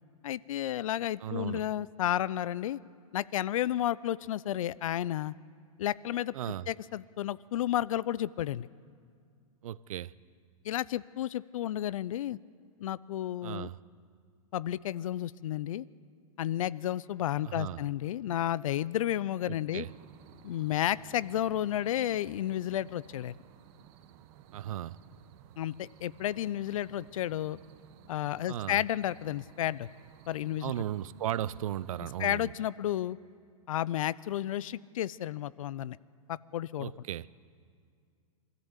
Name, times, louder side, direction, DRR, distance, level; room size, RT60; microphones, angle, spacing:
voice 1, 0.2-2.8 3.1-5.3 5.8-6.3 6.7-8.7 10.6-12.4 12.8-13.7 14.5-15.9 16.4-19.9 20.4-23.3 25.6-27.6 28.1-29.9 30.3-30.7 32.2-33.2 33.7-36.0 36.3-36.9, left 12 dB, 65° left, 0.6 m, -32 dB
voice 2, 1.2-1.6 6.3-6.7 9.6-10.1 13.4-13.8 17.4-17.8 19.4-19.9 24.5-25.0 28.5-28.8 30.6-32.5 36.8-37.3, right 11 dB, 70° right, 0.6 m, -36 dB
sound 1, 19.7-32.3, right 10 dB, 45° right, 1.3 m, -56 dB
25.5 x 14.0 x 8.2 m
hypercardioid pair, 110°, 19 cm